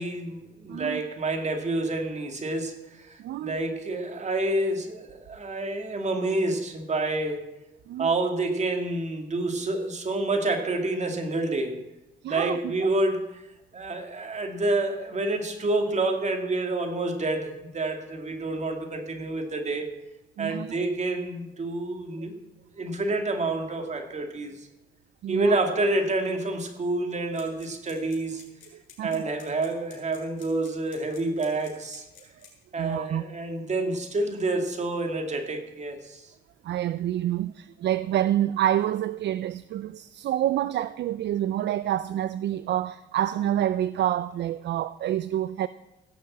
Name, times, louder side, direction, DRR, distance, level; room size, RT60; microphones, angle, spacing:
voice 1, 0.0-7.5 8.0-11.8 12.3-13.2 13.7-19.9 20.4-22.4 22.7-24.7 25.3-28.4 29.0-32.0 32.7-36.3, right 2 dB, 35° right, 2.4 m, -28 dB
voice 2, 0.7-1.0 3.2-3.5 7.9-8.1 12.2-12.9 20.4-20.7 25.2-25.6 28.7-29.2 32.8-33.2 36.6-45.7, right 12 dB, 60° right, 0.4 m, -28 dB
sound 1, 27.3-32.7, left 9 dB, 75° left, 4.1 m, -51 dB
16.5 x 6.8 x 7.4 m
cardioid pair, 90°, 20 cm